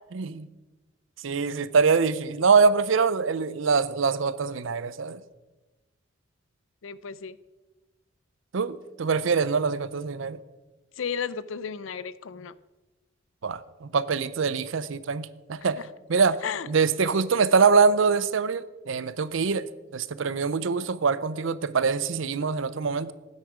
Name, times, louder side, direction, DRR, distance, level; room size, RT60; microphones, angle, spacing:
voice 1, 0.1-0.5 1.2-5.2 8.5-10.4 13.4-15.8 16.1-16.4 16.7-23.1, right 5 dB, 75° right, 17 dB, 0.5 m, -24 dB
voice 2, 6.8-7.4 11.0-12.5 15.8-15.9 16.4-16.7, left 7 dB, 80° left, 17 dB, 0.5 m, -33 dB
13.5 x 9.7 x 5.0 m, 1.2 s
head